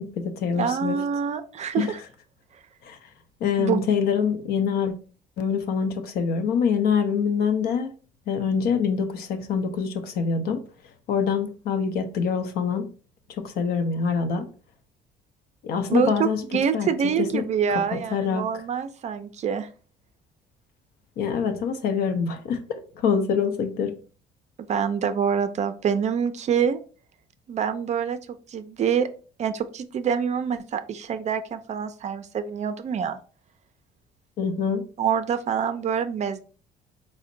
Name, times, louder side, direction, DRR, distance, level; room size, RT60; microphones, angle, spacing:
voice 1, 0.0-1.0 1.8-1.9 2.8-3.0 3.4-4.9 5.4-7.9 8.3-10.6 11.1-12.9 13.4-14.5 15.6-16.4 16.7-16.9 17.2-17.4 17.9-18.5 21.2-24.0 34.4-34.9, left 6 dB, 70° left, 0.7 m, -25 dB
voice 2, 0.6-2.0 3.6-3.8 15.9-19.7 24.7-26.8 27.5-28.2 28.5-29.1 29.4-33.2 35.0-36.4, right 7 dB, 40° right, 0.4 m, -26 dB
4.2 x 2.1 x 3.8 m
cardioid pair, 110°, 17 cm